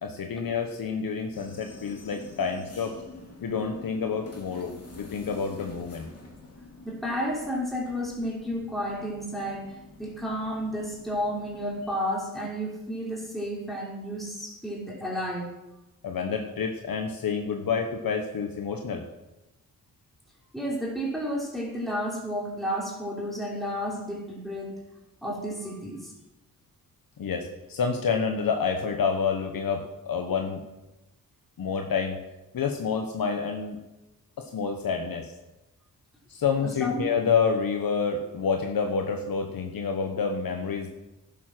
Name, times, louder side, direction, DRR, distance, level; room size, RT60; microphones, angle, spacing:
voice 1, 0.0-3.0 3.4-6.1 16.0-19.0 27.2-30.6 31.6-32.2 32.5-33.8 34.4-35.3 36.3-40.9, left 5 dB, 80° left, 4 dB, 1.2 m, -28 dB
sound 1, 1.3-12.0, left 2 dB, 45° left, 2.7 m, -48 dB
voice 2, 6.8-15.5 20.5-24.8 25.2-26.1 36.8-37.1, equal, ahead, -4 dB, 3.7 m, -32 dB
11.5 x 9.2 x 6.1 m, 0.99 s
cardioid pair, 70°, 35 cm